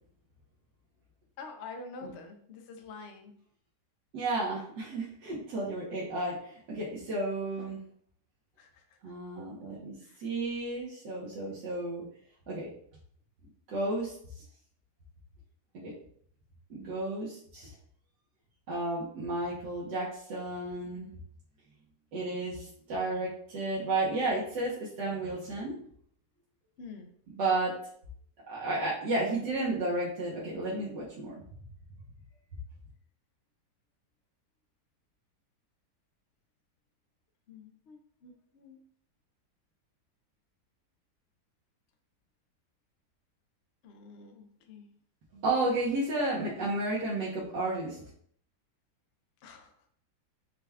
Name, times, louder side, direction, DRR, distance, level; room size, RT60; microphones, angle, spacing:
voice 1, 1.4-3.3 8.6-8.8 10.0-10.2 26.8-27.1 37.5-38.8 43.8-44.9 49.4-49.7, left 4 dB, 70° left, 5 dB, 0.6 m, -47 dB
voice 2, 4.1-7.8 9.0-12.0 12.5-12.7 13.7-14.4 15.7-15.9 16.7-17.7 18.7-21.1 22.1-25.7 27.4-27.7 28.5-31.4 45.3-48.0, right 2 dB, 90° right, -6 dB, 1.6 m, -32 dB
5.7 x 2.3 x 3.4 m, 0.62 s
omnidirectional pair, 1.8 m